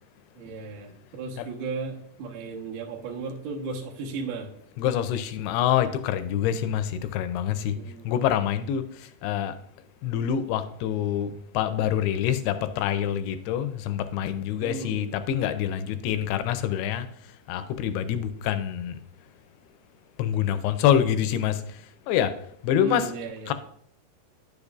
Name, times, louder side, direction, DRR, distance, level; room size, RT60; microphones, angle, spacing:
voice 1, 0.3-4.5 7.7-8.1 14.6-15.1 22.8-23.5, right 4 dB, 80° right, -1 dB, 1.5 m, -35 dB
voice 2, 4.8-7.8 8.1-8.8 9.2-9.6 10.0-17.1 17.5-19.0 20.2-21.6 22.1-22.4 22.6-23.1 23.5-23.6, left 10 dB, 80° left, 10 dB, 2.4 m, -26 dB
10.5 x 6.6 x 2.4 m, 0.68 s
omnidirectional pair, 4.9 m